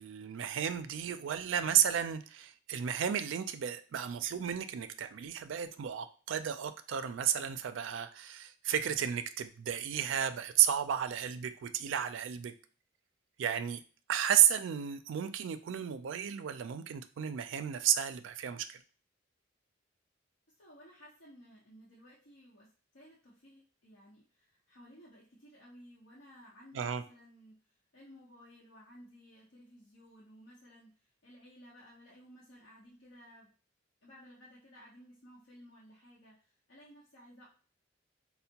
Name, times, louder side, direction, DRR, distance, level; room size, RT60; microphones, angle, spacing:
voice 1, 0.0-12.5 13.4-13.8 14.1-18.8 26.7-27.0, right 9 dB, 70° right, 0.3 m, -32 dB
voice 2, 20.6-33.5 34.0-37.5, equal, 75° left, 0.9 m, -57 dB
4.3 x 2.1 x 2.8 m
head